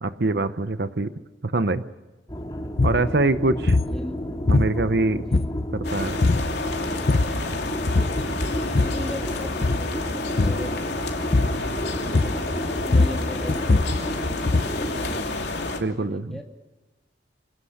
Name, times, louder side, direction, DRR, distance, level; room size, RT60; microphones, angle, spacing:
voice 1, 0.0-1.1 1.4-1.8 2.8-3.8 4.5-5.2 5.7-6.2 15.8-16.4, right 2 dB, 65° right, 12 dB, 0.8 m, -24 dB
sound 1, 2.3-15.3, equal, 25° left, 2.4 m, -32 dB
sound 2, 2.7-3.0 3.7-4.0 4.5-5.0 5.3-5.8 6.2-6.5 6.9-7.4 7.9-8.2 8.5-9.1 9.5-9.9 10.4-10.7 11.3-11.7 12.1-12.5 12.8-14.8, left 2 dB, 55° left, 0.7 m, -21 dB
voice 2, 3.8-4.3 5.1-5.5 8.8-10.7 12.2-15.2 15.6-16.5, equal, ahead, 2 dB, 2.4 m, -39 dB
sound 3, 5.8-15.8, left 2 dB, 70° left, 3.0 m, -30 dB
27.0 x 18.5 x 6.5 m, 1.2 s
head